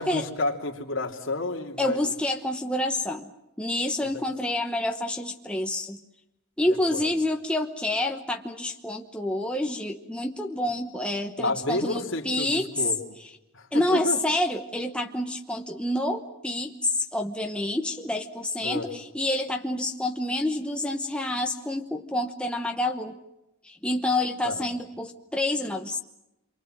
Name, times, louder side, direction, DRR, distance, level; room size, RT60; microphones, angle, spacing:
voice 1, 0.0-2.1 4.0-4.2 6.7-7.1 11.4-12.5 12.8-13.0 13.5-14.2 18.6-18.8 24.4-24.6, left 2 dB, 60° left, 1 dB, 2.9 m, -30 dB
voice 2, 1.8-3.3 3.6-6.0 6.6-12.9 13.2-13.3 13.7-23.2 23.6-26.0, left 1 dB, 5° left, 2 dB, 1.0 m, -28 dB
28.0 x 24.0 x 7.8 m, 0.90 s
head